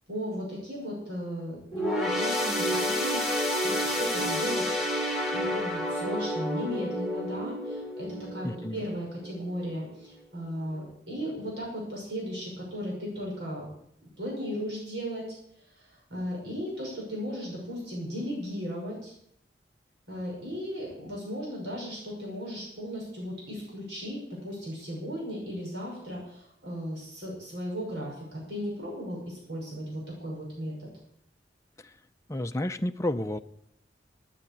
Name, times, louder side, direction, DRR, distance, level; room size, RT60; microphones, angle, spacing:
voice 1, 0.1-4.7 5.3-13.7 14.2-15.3 15.6-19.1 20.1-30.9, equal, 80° right, -3 dB, 6.2 m, -36 dB
sound 1, 1.7-9.4 9.8-10.0 10.9-11.0, equal, ahead, 3.0 m, -30 dB
voice 2, 8.4-8.8 32.3-33.4, left 1 dB, 15° left, 7 dB, 0.6 m, -30 dB
12.0 x 9.5 x 8.6 m, 0.72 s
head